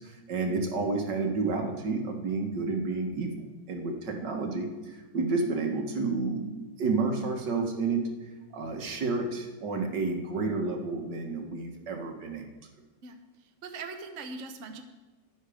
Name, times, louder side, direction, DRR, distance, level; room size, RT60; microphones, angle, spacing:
voice 1, 0.0-6.5 6.8-8.0 8.5-12.5, right 3 dB, 75° right, 3 dB, 2.0 m, -30 dB
voice 2, 13.0-14.8, right 4 dB, 50° right, 6 dB, 1.1 m, -41 dB
13.0 x 9.9 x 5.0 m, 1.2 s
omnidirectional pair, 1.9 m